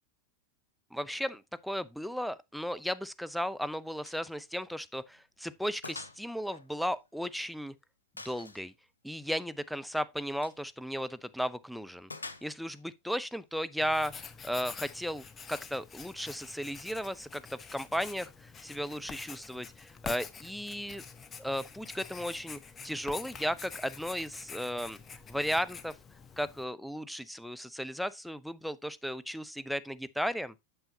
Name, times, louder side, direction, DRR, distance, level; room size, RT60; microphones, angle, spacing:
voice 1, 0.9-7.7 8.2-8.7 9.0-12.1 12.4-21.0 21.4-25.0 25.3-26.0 26.4-30.5, equal, ahead, 0.6 m, -35 dB
Gunshot gunfire, 4.0-4.3 4.6-4.7 5.2-5.3 5.8-6.2 6.5-7.5 8.2-8.7 10.3-10.6 12.1-12.8, left 3 dB, 80° left, 0.8 m, -45 dB
Writing, 13.8-26.6, left 6 dB, 20° left, 0.9 m, -47 dB
8.8 x 7.0 x 2.8 m
figure-of-eight pair, 85°, 0 cm